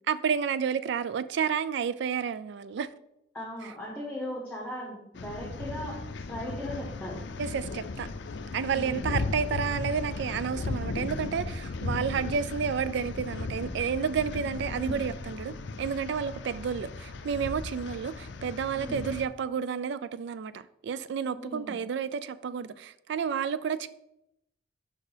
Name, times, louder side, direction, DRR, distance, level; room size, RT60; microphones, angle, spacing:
voice 1, 0.1-2.9 7.4-8.1 8.5-23.9, right 6 dB, 60° right, 0.3 m, -31 dB
voice 2, 3.3-6.0 6.3-7.2 8.7-9.0 14.7-15.0 18.8-19.0 21.3-21.8, equal, 5° left, 1.1 m, -38 dB
sound 1, 5.1-19.3, left 3 dB, 60° left, 0.4 m, -36 dB
5.0 x 4.4 x 5.0 m
head